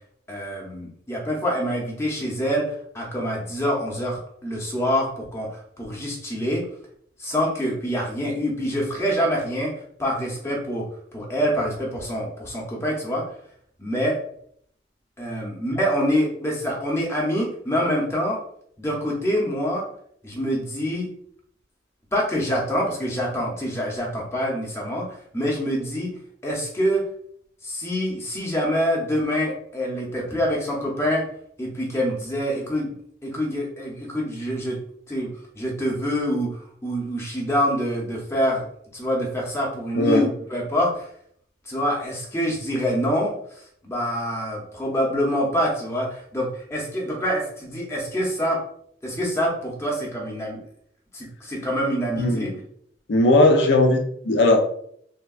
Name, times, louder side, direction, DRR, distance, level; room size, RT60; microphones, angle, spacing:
voice 1, 0.3-6.7 7.2-9.7 10.0-13.3 13.8-14.2 15.2-18.4 18.8-19.8 20.2-21.1 22.1-26.1 26.4-27.0 27.6-31.2 31.6-33.0 33.2-34.8 35.1-35.3 35.5-38.7 38.9-41.1 41.7-48.6 49.0-50.6 51.1-52.6, equal, 15° left, -2 dB, 0.7 m, -26 dB
voice 2, 40.0-40.3 52.2-52.6 53.1-54.7, left 2 dB, 85° left, 4 dB, 0.5 m, -18 dB
3.4 x 2.2 x 2.3 m, 0.65 s
head